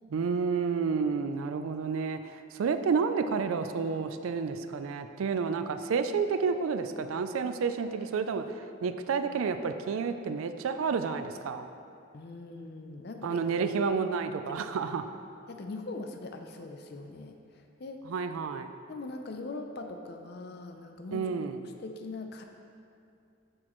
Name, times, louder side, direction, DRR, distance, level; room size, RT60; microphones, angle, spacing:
voice 1, 0.1-11.7 13.2-15.0 18.1-18.7 21.1-21.6, right 5 dB, 85° right, 9 dB, 0.4 m, -30 dB
voice 2, 12.1-13.4 14.5-14.6 15.5-18.0 18.9-21.3 21.8-22.4, left 3 dB, 50° left, 4 dB, 0.4 m, -41 dB
8.9 x 6.3 x 3.0 m, 2.5 s
head